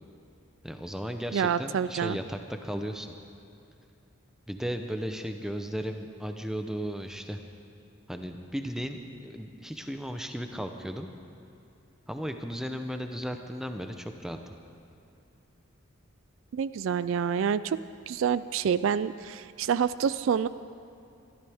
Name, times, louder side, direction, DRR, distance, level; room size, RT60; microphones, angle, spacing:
voice 1, 0.6-3.2 4.5-7.4 8.1-11.1 12.1-14.5, equal, ahead, 5 dB, 0.7 m, -35 dB
voice 2, 1.3-2.2 16.5-17.8 18.1-20.5, right 7 dB, 70° right, 16 dB, 0.3 m, -27 dB
23.5 x 13.0 x 3.5 m, 2.7 s
head